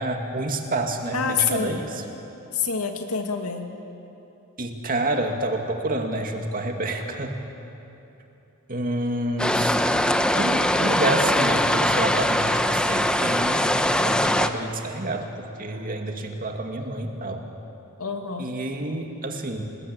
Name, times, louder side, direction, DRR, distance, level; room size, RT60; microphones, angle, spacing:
voice 1, 0.0-2.0 4.6-7.4 8.7-9.7 10.4-17.5 18.4-19.6, right 1 dB, 40° right, 3 dB, 2.3 m, -28 dB
voice 2, 1.1-1.8 2.5-3.7 18.0-18.5, left 5 dB, 80° left, 4 dB, 2.3 m, -26 dB
sound 1, 9.4-14.5, left 1 dB, 5° left, 0.9 m, -21 dB
28.0 x 20.0 x 8.8 m, 2.9 s
head